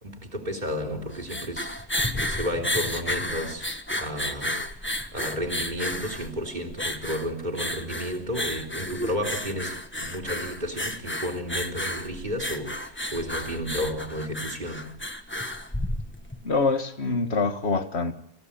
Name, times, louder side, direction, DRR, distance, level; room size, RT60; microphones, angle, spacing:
voice 1, 0.0-3.7 4.0-4.6 5.1-14.9, equal, 45° right, 3.7 m, -32 dB
sound 1, 1.0-16.4, left 1 dB, 10° left, 1.4 m, -32 dB
voice 2, 16.4-18.1, left 3 dB, 75° left, 2.0 m, -25 dB
26.5 x 15.5 x 8.7 m
omnidirectional pair, 1.1 m